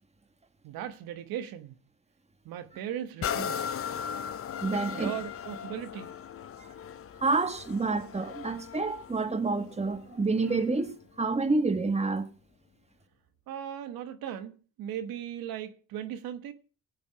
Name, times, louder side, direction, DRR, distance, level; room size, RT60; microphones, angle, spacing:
voice 1, 0.6-1.7 2.4-3.8 4.8-6.1 13.5-16.5, right 10 dB, 85° right, 1.2 m, -38 dB
sound 1, 3.2-10.8 11.4-11.5, left 8 dB, 40° left, 0.6 m, -38 dB
voice 2, 4.6-5.1 6.6-6.7 7.2-12.3, right 3 dB, 20° right, 1.7 m, -28 dB
19.0 x 7.1 x 4.7 m
cardioid pair, 85°, 34 cm